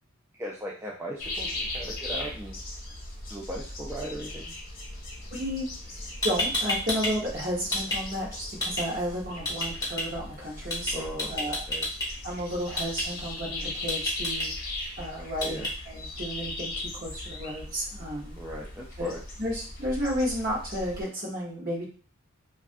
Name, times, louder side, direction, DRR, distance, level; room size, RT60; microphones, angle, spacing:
voice 1, 0.4-2.6 3.3-4.6 10.9-11.9 15.4-15.7 18.4-19.2, right 1 dB, 10° right, -4 dB, 0.3 m, -38 dB
sound 1, 1.2-21.0, left 2 dB, 45° left, 0.8 m, -38 dB
voice 2, 5.3-5.7 6.2-11.6 12.2-14.5 15.0-18.4 19.0-19.1 19.4-21.9, equal, 40° right, -4 dB, 1.0 m, -32 dB
sound 2, 5.9-6.0 6.2-7.1 7.4-8.0 8.6-8.8 9.4-10.0 10.7-10.9 11.2-12.1 12.8-13.0 13.9-14.4 15.4-15.7, left 1 dB, 20° left, 1.0 m, -28 dB
3.2 x 2.4 x 2.5 m, 0.40 s
head